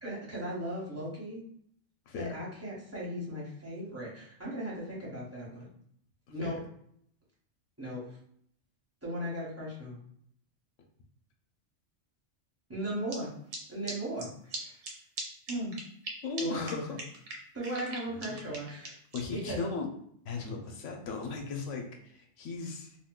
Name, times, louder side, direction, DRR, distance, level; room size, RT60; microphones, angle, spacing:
voice 1, 0.0-1.4 2.1-5.7 6.3-6.6 7.8-8.2 9.0-10.0 12.7-13.4 13.7-14.8 15.5-15.7 16.4-16.8 17.5-18.9 19.3-19.6, right 1 dB, 15° right, -6 dB, 1.0 m, -37 dB
sound 1, 13.1-13.2 13.5-13.6 13.9-14.0 14.2-14.3 14.5-14.6 14.8-14.9 15.2-15.3 15.5-16.1 16.4-16.5 16.7-16.8 17.0-19.2, right 2 dB, 70° right, 1.1 m, -39 dB
voice 2, 16.2-17.0 17.7-17.8 18.1-18.5 19.1-19.9 20.2-23.0, left 4 dB, 80° left, 2 dB, 0.9 m, -37 dB
3.6 x 2.6 x 2.2 m, 0.66 s
omnidirectional pair, 1.3 m